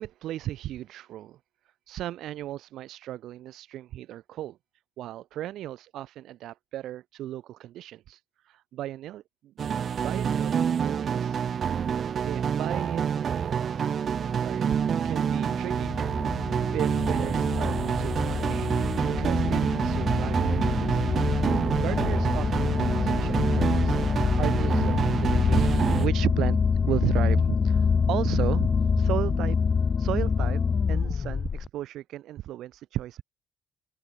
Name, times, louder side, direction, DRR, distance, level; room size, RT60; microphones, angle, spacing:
voice 1, 0.0-1.4 1.6-4.6 5.0-9.5 9.9-11.4 12.2-13.9 14.4-18.7 19.1-21.3 21.5-24.0 24.3-28.7 29.0-29.6 30.0-30.6 30.9-33.2, right 13 dB, 80° right, 1.2 m, -35 dB
sound 1, 9.6-26.1, right 7 dB, 55° right, 1.0 m, -27 dB
sound 2, 14.5-31.7, left 5 dB, 40° left, 0.4 m, -26 dB
cardioid pair, 90°, 0 cm